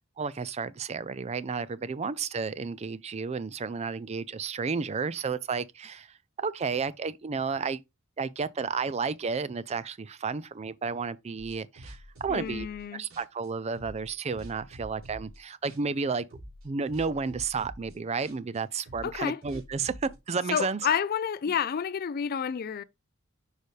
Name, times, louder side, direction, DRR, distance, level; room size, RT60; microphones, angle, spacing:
voice 1, 0.2-7.8 8.2-12.7 12.9-16.2 16.6-20.8, right 5 dB, 30° right, 0.4 m, -32 dB
sound 1, 11.4-12.8 13.1-15.4 15.7-16.0 16.3-20.2, equal, 85° right, 3.3 m, -47 dB
voice 2, 12.3-13.0 19.0-19.4 20.5-22.8, left 7 dB, 45° left, 0.4 m, -29 dB
6.7 x 4.9 x 3.2 m
head